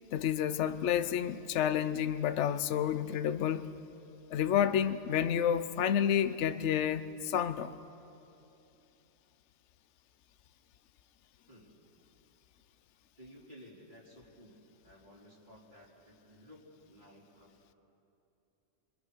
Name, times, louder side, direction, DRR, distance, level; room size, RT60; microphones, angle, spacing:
voice 1, 0.1-3.8 4.3-7.7, left 9 dB, 65° left, 1.0 m, -30 dB
voice 2, 11.5-11.8 13.2-17.6, equal, 40° right, 4.6 m, -56 dB
28.5 x 25.0 x 6.5 m
omnidirectional pair, 1.3 m